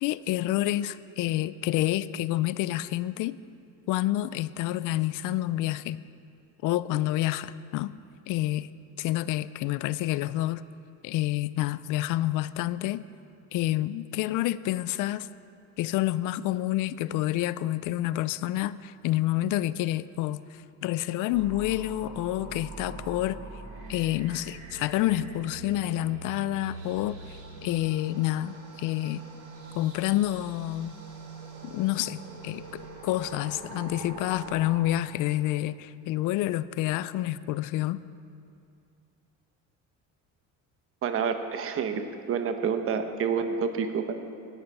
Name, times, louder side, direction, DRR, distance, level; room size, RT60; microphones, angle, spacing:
voice 1, 0.0-3.4 3.9-6.0 6.6-7.9 8.3-8.7 9.0-10.6 11.0-13.0 13.5-15.3 15.8-23.4 23.9-29.2 29.8-30.9 31.6-38.0, left 15 dB, 80° left, 16 dB, 0.5 m, -28 dB
sound 1, 21.3-34.8, right 4 dB, 90° right, 2.7 m, -43 dB
voice 2, 41.0-44.1, right 6 dB, 45° right, 7 dB, 1.0 m, -28 dB
14.5 x 10.5 x 5.5 m, 2.5 s
cardioid pair, 165°, 31 cm